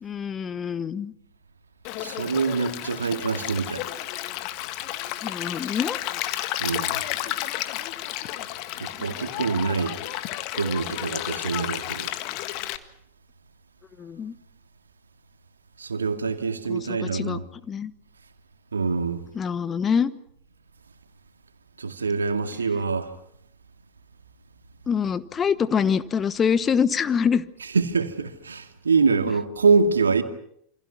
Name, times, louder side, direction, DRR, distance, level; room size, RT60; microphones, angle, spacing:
voice 1, 0.0-1.1 5.2-6.0 14.0-14.3 16.7-17.4 17.7-17.9 19.3-20.1 24.9-27.4, left 7 dB, 20° left, 1.1 m, -25 dB
Stream, 1.8-12.8, left 15 dB, 45° left, 1.7 m, -32 dB
voice 2, 2.0-3.9 6.6-7.0 8.8-10.0 10.6-12.1 15.8-17.4 18.7-19.2 21.8-23.1 27.7-30.2, right 4 dB, 75° right, 2.2 m, -25 dB
28.5 x 26.0 x 5.9 m
figure-of-eight pair, 90°, 0 cm